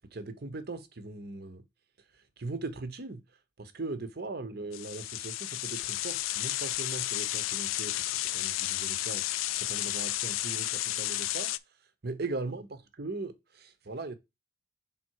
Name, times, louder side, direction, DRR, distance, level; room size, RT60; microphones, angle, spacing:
voice 1, 0.1-1.6 2.1-3.2 3.6-9.3 9.5-11.5 12.0-14.1, right 3 dB, 50° right, 0.8 m, -39 dB
sound 1, 4.7-11.6, left 16 dB, 80° left, 0.3 m, -32 dB
5.8 x 3.6 x 4.6 m
head